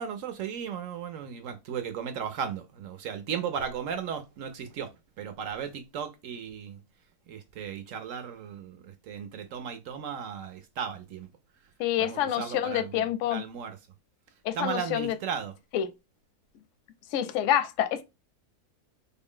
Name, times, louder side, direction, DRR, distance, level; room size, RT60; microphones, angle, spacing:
voice 1, 0.0-4.9 5.2-6.8 7.3-11.3 12.0-13.8 14.5-15.5, right 7 dB, 70° right, 0.8 m, -36 dB
voice 2, 11.8-13.4 14.4-15.1 15.7-15.9 17.1-18.0, left 11 dB, 70° left, 0.8 m, -27 dB
3.7 x 2.1 x 3.7 m
omnidirectional pair, 1.7 m